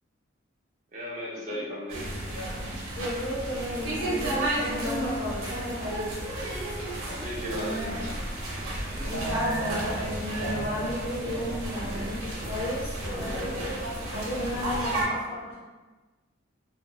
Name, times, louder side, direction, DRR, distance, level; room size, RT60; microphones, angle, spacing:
voice 1, 0.9-2.1 7.1-8.2 13.9-14.1, equal, 35° right, -5 dB, 0.6 m, -36 dB
sound 1, 1.9-15.0, right 1 dB, 90° right, 0.7 m, -32 dB
voice 2, 3.0-6.1 9.0-13.6 14.1-15.6, left 1 dB, 75° left, -8 dB, 0.7 m, -34 dB
2.9 x 2.0 x 2.2 m, 1.2 s
head